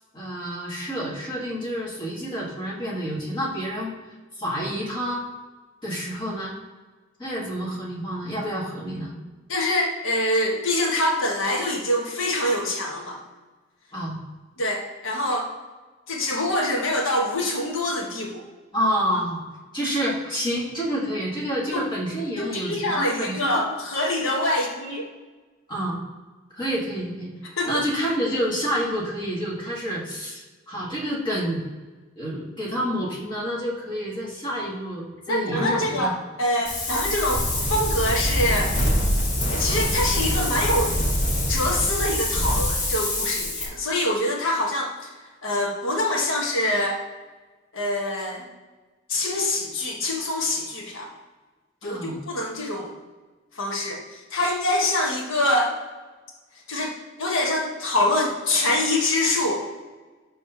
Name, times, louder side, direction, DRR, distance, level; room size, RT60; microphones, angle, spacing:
voice 1, 0.1-3.9 4.4-5.2 5.8-6.5 7.2-9.1 13.9-14.2 18.7-19.4 19.7-23.6 25.7-26.0 26.5-27.3 27.6-31.6 32.2-36.1 51.8-52.2, equal, 25° left, -6 dB, 1.6 m, -28 dB
voice 2, 9.5-13.2 14.6-15.5 16.1-18.4 21.7-21.9 22.4-25.1 27.6-27.7 35.3-38.7 39.5-41.0 41.5-45.1 45.4-47.0 47.7-48.4 49.1-51.1 51.8-52.9 53.5-55.7 56.7-56.9 57.2-59.7, left 1 dB, 80° left, -1 dB, 1.2 m, -25 dB
Wind, 36.6-43.7, left 1 dB, 40° left, 1.3 m, -24 dB
6.2 x 3.2 x 5.6 m, 1.3 s
head